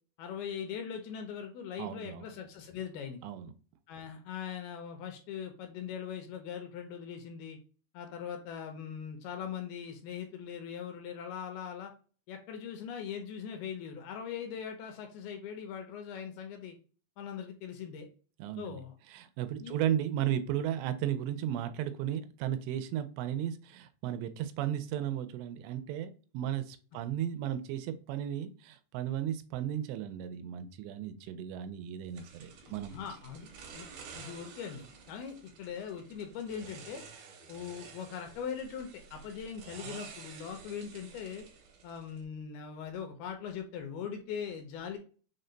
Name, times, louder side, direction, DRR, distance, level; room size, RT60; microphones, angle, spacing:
voice 1, 0.2-3.2 3.9-7.6 7.9-11.9 12.3-16.8 17.2-18.1 18.6-18.9 19.6-19.8 32.6-33.5 33.7-33.9 34.2-37.0 37.5-41.5 41.8-45.0, left 7 dB, 80° left, 5 dB, 2.3 m, -41 dB
voice 2, 1.8-2.2 3.2-3.5 18.4-18.8 19.1-33.0, right 10 dB, 90° right, 10 dB, 2.8 m, -35 dB
sound 1, 32.2-42.2, right 5 dB, 70° right, 2.0 m, -51 dB
6.4 x 2.2 x 3.8 m, 0.39 s
omnidirectional pair, 4.8 m